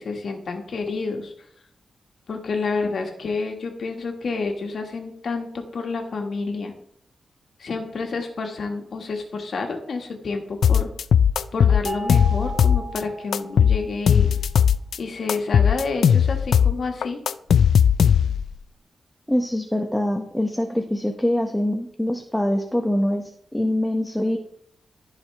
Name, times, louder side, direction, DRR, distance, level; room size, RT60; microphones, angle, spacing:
voice 1, 0.0-1.3 2.3-6.7 7.6-10.9 11.5-14.3 15.0-17.2, left 4 dB, 65° left, 3 dB, 1.5 m, -29 dB
sound 1, 10.6-13.0 13.3-15.0 15.3-18.5, left 8 dB, 85° left, 0.3 m, -18 dB
sound 2, 11.9-14.1, right 2 dB, 25° right, 1.7 m, -35 dB
voice 2, 19.3-24.4, left 1 dB, 5° left, 3 dB, 0.8 m, -24 dB
14.0 x 4.9 x 3.3 m, 0.69 s
cardioid pair, 90°, 0 cm